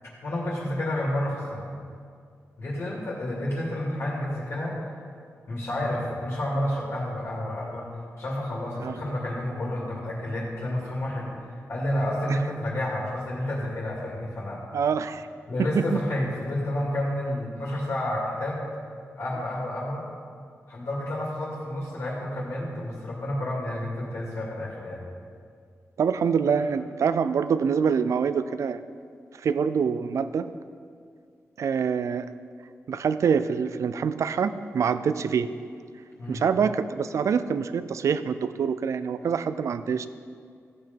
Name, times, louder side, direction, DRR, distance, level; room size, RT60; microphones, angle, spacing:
voice 1, 0.2-1.7 2.6-4.7 5.5-7.9 8.2-14.6 15.5-18.7 19.2-20.0 20.7-25.0 36.2-36.4, left 1 dB, 60° left, -4 dB, 2.4 m, -30 dB
voice 2, 8.8-9.1 12.3-12.4 14.7-15.3 15.6-16.0 26.0-28.8 29.4-30.5 31.6-32.3 32.9-35.5 36.3-40.1, right 6 dB, 70° right, 13 dB, 0.5 m, -25 dB
14.5 x 8.0 x 5.3 m, 2.3 s
wide cardioid pair, 175°, 5 cm